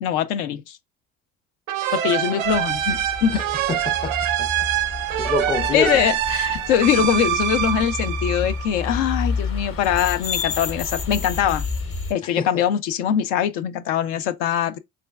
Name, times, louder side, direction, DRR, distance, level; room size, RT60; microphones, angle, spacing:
voice 1, 0.0-0.8 1.9-3.4 5.7-11.6 12.1-14.8, left 9 dB, 70° left, 0.5 m, -22 dB
sound 1, 1.7-9.1, right 11 dB, 85° right, 0.5 m, -25 dB
sound 2, 2.4-12.1, left 4 dB, 35° left, 0.8 m, -30 dB
voice 2, 3.3-4.5 5.2-6.0 12.2-12.6, left 3 dB, 15° left, 0.4 m, -27 dB
4.9 x 2.4 x 2.2 m
hypercardioid pair, 60°, 38 cm